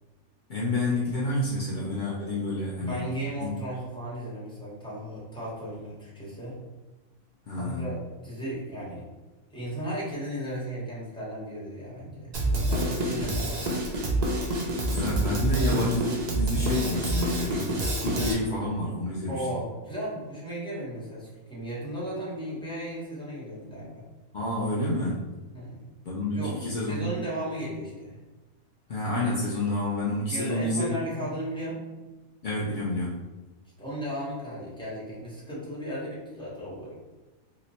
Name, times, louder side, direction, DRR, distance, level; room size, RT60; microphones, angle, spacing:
voice 1, 0.5-3.0 3.4-3.6 7.5-7.9 13.1-13.4 14.8-19.5 24.3-25.3 26.0-27.1 28.9-31.3 32.4-33.3, left 1 dB, 75° left, -6 dB, 0.4 m, -29 dB
voice 2, 2.8-6.6 7.6-9.1 9.5-13.8 19.3-24.0 25.5-25.8 26.3-26.5 26.9-28.2 30.3-31.8 33.8-36.9, right 1 dB, 5° left, -8 dB, 0.9 m, -35 dB
Drum kit, 12.3-18.3, right 1 dB, 70° right, 0.4 m, -27 dB
2.9 x 2.1 x 4.0 m, 1.2 s
omnidirectional pair, 1.5 m